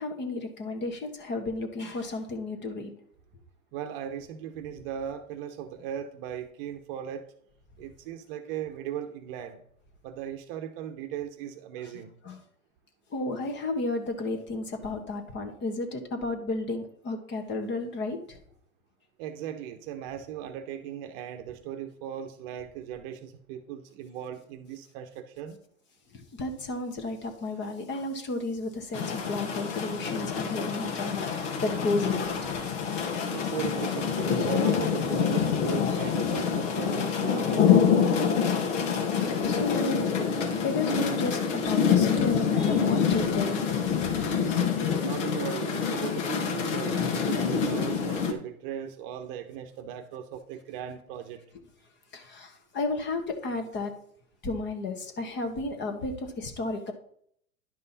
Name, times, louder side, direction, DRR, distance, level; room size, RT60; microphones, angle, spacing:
voice 1, 0.0-2.9 11.8-11.9 12.2-12.4 13.1-18.4 26.1-32.5 32.9-33.1 39.1-40.1 40.6-43.7 43.9-44.3 52.1-53.9 54.4-56.9, left 2 dB, 25° left, 7 dB, 1.4 m, -33 dB
voice 2, 3.7-7.3 7.8-9.6 10.0-12.1 19.2-25.6 33.3-38.0 45.0-51.4, right 9 dB, 40° right, 7 dB, 1.0 m, -38 dB
sound 1, 28.9-48.3, left 7 dB, 55° left, 1.7 m, -26 dB
11.0 x 5.4 x 4.1 m, 0.65 s
hypercardioid pair, 110°, 43 cm